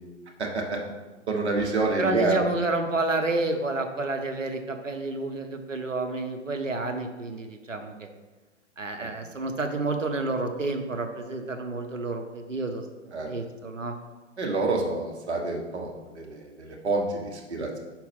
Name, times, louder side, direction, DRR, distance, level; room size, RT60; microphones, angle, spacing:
voice 1, 0.4-0.8 1.3-2.4 9.0-9.1 13.1-13.3 14.4-15.9 16.1-17.8, right 3 dB, 60° right, 1 dB, 1.4 m, -28 dB
voice 2, 2.0-8.1 8.8-12.9 13.3-14.0 17.6-17.7, right 2 dB, 85° right, 5 dB, 0.9 m, -29 dB
5.3 x 4.6 x 5.3 m, 1.2 s
figure-of-eight pair, 115°, 37 cm